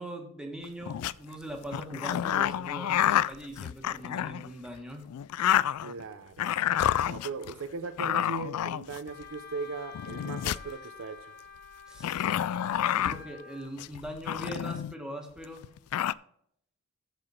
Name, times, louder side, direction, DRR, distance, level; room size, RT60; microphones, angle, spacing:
voice 1, 0.0-5.1 11.9-12.3 12.9-15.7, right 1 dB, 5° right, 2 dB, 1.6 m, -41 dB
sound 1, 0.6-1.1 1.7-4.5 5.1-6.0 6.4-7.5 8.0-9.2 9.9-10.7 12.0-13.2 13.8-14.9 15.4-15.5 15.6-16.1, left 10 dB, 90° left, 0.3 m, -29 dB
voice 2, 5.8-6.5 7.0-11.3, right 4 dB, 65° right, 10 dB, 0.6 m, -38 dB
Wind instrument woodwind instrument, 9.1-13.7, left 5 dB, 45° left, 0.9 m, -48 dB
14.5 x 5.0 x 4.4 m, 0.69 s
head